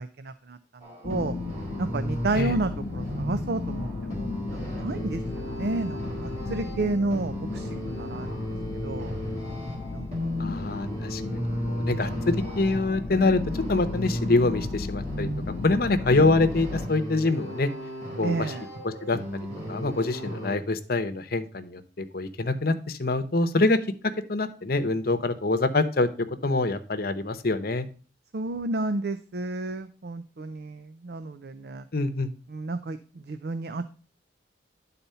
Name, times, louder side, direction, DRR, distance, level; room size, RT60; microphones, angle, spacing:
voice 1, 0.0-1.4 1.8-8.3 8.8-9.2 9.9-10.8 11.3-11.6 18.2-18.7 28.3-31.9 32.5-33.9, right 2 dB, 60° right, 10 dB, 0.5 m, -32 dB
sound 1, 0.8-20.5, left 1 dB, 40° right, 3.1 m, -35 dB
sound 2, 1.0-16.9, left 3 dB, 35° left, 0.3 m, -35 dB
voice 2, 10.4-15.3 15.6-17.7 18.2-18.5 18.8-19.2 19.7-23.8 24.3-27.9 31.9-32.3, left 2 dB, 55° left, 9 dB, 0.8 m, -25 dB
10.5 x 4.2 x 5.5 m, 0.39 s
head